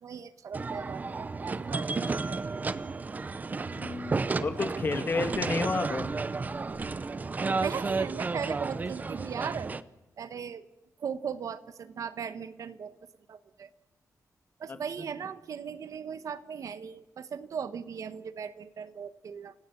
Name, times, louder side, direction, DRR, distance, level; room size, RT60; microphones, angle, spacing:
voice 1, 0.0-2.6 7.6-9.7 10.2-10.7 11.0-13.0 13.3-13.7 14.6-19.5, right 7 dB, 65° right, 12 dB, 1.4 m, -38 dB
sound 1, 0.5-9.8, right 4 dB, 25° right, 0.8 m, -32 dB
voice 2, 3.7-6.1 14.7-14.8, left 3 dB, 35° left, 7 dB, 2.2 m, -31 dB
29.0 x 18.0 x 8.7 m, 1.0 s
wide cardioid pair, 160°, 6 cm